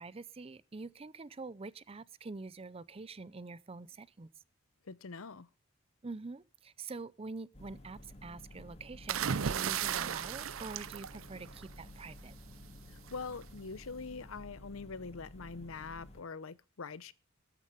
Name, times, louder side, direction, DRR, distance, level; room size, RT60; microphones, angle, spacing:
voice 1, 0.0-4.3 6.0-12.3, right 3 dB, 30° right, 0.5 m, -46 dB
voice 2, 4.8-5.5 12.9-17.1, left 4 dB, 85° left, 0.7 m, -44 dB
sound 1, 7.5-16.2, left 1 dB, 30° left, 2.8 m, -52 dB
sound 2, 9.1-11.8 13.1-13.4, right 8 dB, 75° right, 0.5 m, -35 dB
13.0 x 9.0 x 5.4 m
head